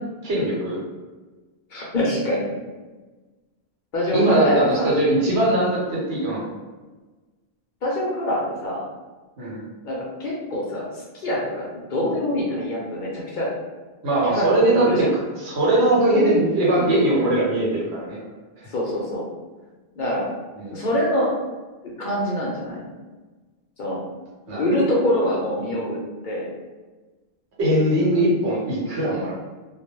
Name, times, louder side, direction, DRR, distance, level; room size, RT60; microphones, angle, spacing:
voice 1, 0.2-0.8 4.1-6.5 9.4-9.6 14.0-15.0 15.4-18.2 20.6-20.8 24.5-24.6 25.7-25.8 27.6-29.3, right 1 dB, 80° right, -5 dB, 1.1 m, -20 dB
voice 2, 1.7-2.5 3.9-4.9 7.8-8.9 9.8-13.5 14.2-15.1 17.3-17.5 17.9-18.0 18.7-19.3 20.0-20.3 20.7-21.3 21.8-22.8 23.8-24.0 24.5-26.0 26.2-26.5, left 1 dB, 55° left, -4 dB, 0.6 m, -25 dB
2.2 x 2.1 x 2.9 m, 1.3 s
omnidirectional pair, 1.1 m